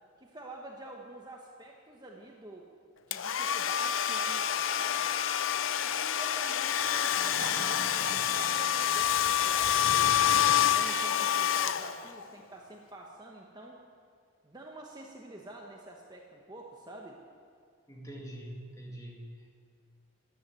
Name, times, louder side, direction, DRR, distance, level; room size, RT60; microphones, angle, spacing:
voice 1, 0.2-2.7 3.1-5.2 5.8-10.2 10.7-13.8 14.4-17.2, right 2 dB, 20° right, 0 dB, 1.1 m, -48 dB
Domestic sounds home sounds, 3.1-12.3, left 10 dB, 70° left, 0.5 m, -27 dB
sound 1, 7.1-10.5 10.8-10.9, right 2 dB, 45° right, 2.4 m, -44 dB
voice 2, 17.9-19.5, right 1 dB, 15° left, -2 dB, 2.3 m, -44 dB
14.0 x 9.7 x 9.3 m, 2.1 s
head